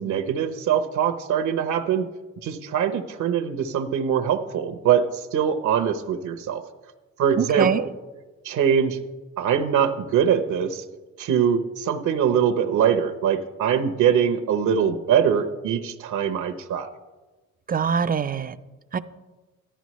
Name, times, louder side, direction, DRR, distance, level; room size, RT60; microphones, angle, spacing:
voice 1, 0.0-2.1 2.4-6.6 7.2-7.9 8.4-9.0 9.4-10.8 11.2-16.9, right 8 dB, 75° right, 7 dB, 0.8 m, -23 dB
voice 2, 7.4-7.8 17.7-18.6 18.9-19.0, right 6 dB, 30° right, 14 dB, 0.4 m, -23 dB
13.5 x 11.0 x 3.1 m, 1.2 s
cardioid pair, 90°, 30 cm